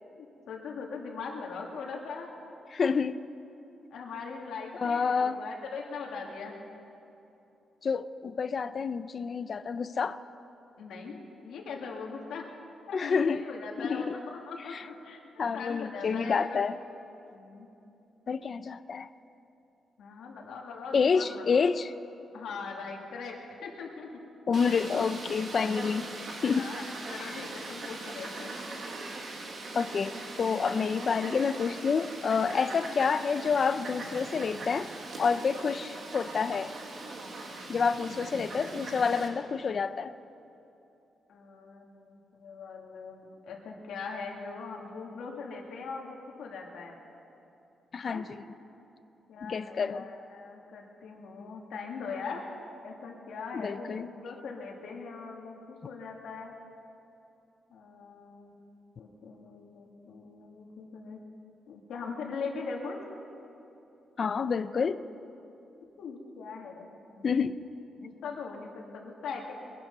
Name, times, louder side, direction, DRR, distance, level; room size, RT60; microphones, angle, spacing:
voice 1, 0.0-2.3 3.9-6.6 8.4-8.5 10.8-12.4 12.9-15.2 15.5-16.7 17.3-17.7 20.0-21.6 22.3-24.1 26.0-26.1 26.4-26.8 27.1-28.6 32.5-33.0 41.3-47.0 48.0-48.2 49.3-52.5 52.8-56.5 57.7-58.6 59.0-61.2 61.7-63.0 66.0-67.3 68.0-69.5, left 4 dB, 75° left, 0 dB, 2.3 m, -41 dB
voice 2, 2.7-3.2 4.8-5.4 7.8-10.2 12.9-13.4 13.8-14.2 14.7-14.8 15.4-16.8 18.3-19.1 20.9-21.9 24.5-26.7 29.7-34.9 35.2-36.7 37.7-40.1 47.9-48.3 49.4-50.1 53.5-54.1 64.2-65.0 67.2-67.6, left 5 dB, 35° left, 13 dB, 0.4 m, -28 dB
Fowl, 24.5-39.3, right 2 dB, 40° right, 1.6 m, -41 dB
22.0 x 11.0 x 5.5 m, 2.9 s
wide cardioid pair, 180°, 0 cm